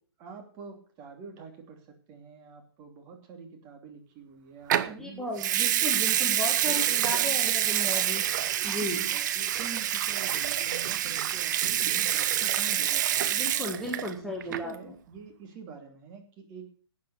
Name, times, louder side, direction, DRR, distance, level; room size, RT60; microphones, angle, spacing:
voice 1, 0.2-7.6 8.8-13.4 13.8-16.7, right 5 dB, 25° right, 3 dB, 2.9 m, -46 dB
Water tap faucet / Sink (filling or washing) / Liquid, 4.7-4.9 5.4-14.1 14.4-14.8, right 11 dB, 45° right, 0.8 m, -27 dB
voice 2, 4.9-8.3 8.6-9.0 13.3-14.9, left 1 dB, 5° left, -1 dB, 1.8 m, -35 dB
12.5 x 8.5 x 6.4 m, 0.41 s
hypercardioid pair, 145°, 14 cm